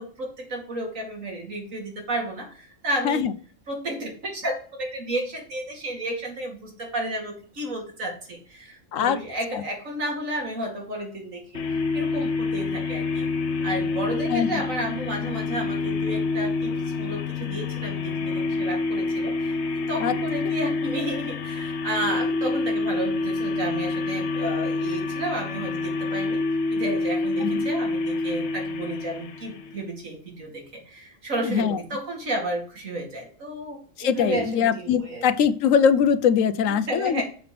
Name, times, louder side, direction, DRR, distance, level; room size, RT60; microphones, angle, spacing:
voice 1, 0.0-3.2 3.7-11.6 11.9-13.3 13.6-26.4 26.7-35.2 36.7-37.2, right 1 dB, 85° right, 0 dB, 2.8 m, -32 dB
sound 1, 11.5-29.8, left 3 dB, 60° left, 1.1 m, -27 dB
voice 2, 31.4-31.8 34.0-37.2, left 7 dB, 85° left, 12 dB, 1.0 m, -22 dB
6.8 x 5.8 x 5.1 m, 0.43 s
omnidirectional pair, 1.3 m